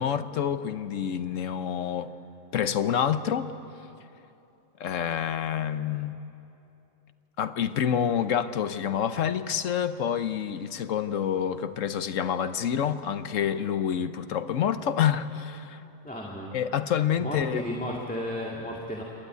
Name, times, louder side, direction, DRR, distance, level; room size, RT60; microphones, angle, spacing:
voice 1, 0.0-2.1 2.5-3.5 4.8-6.2 7.4-15.8 16.5-17.6, left 8 dB, 70° left, 11 dB, 1.2 m, -27 dB
voice 2, 16.0-16.5 17.2-19.0, left 1 dB, 5° left, -3 dB, 2.0 m, -33 dB
28.0 x 12.5 x 9.3 m, 2.8 s
omnidirectional pair, 1.4 m